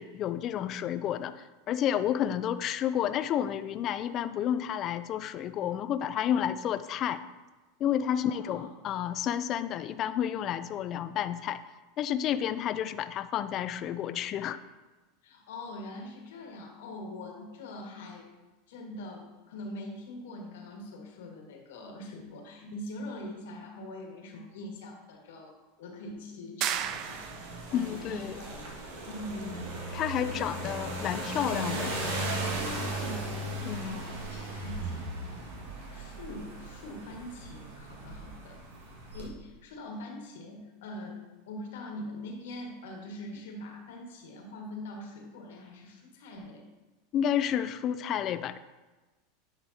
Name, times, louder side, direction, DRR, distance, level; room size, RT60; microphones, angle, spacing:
voice 1, 0.0-7.2 7.8-11.6 12.0-14.6 27.7-28.4 29.9-31.9 33.6-34.0 47.1-48.6, left 10 dB, 40° left, 13 dB, 0.3 m, -30 dB
voice 2, 8.1-8.7 15.2-18.3 18.7-27.2 27.6-28.6 29.1-29.8 30.2-30.6 32.7-33.3 33.8-35.1 35.9-38.6 39.1-46.6, left 1 dB, 80° left, 1 dB, 1.6 m, -43 dB
sound 1, 26.6-27.7, right 10 dB, 45° right, 0.4 m, -33 dB
car driving past, 26.7-39.3, right 2 dB, 85° right, 1.7 m, -37 dB
10.0 x 5.1 x 2.8 m, 1.2 s
supercardioid pair, 135°, 0 cm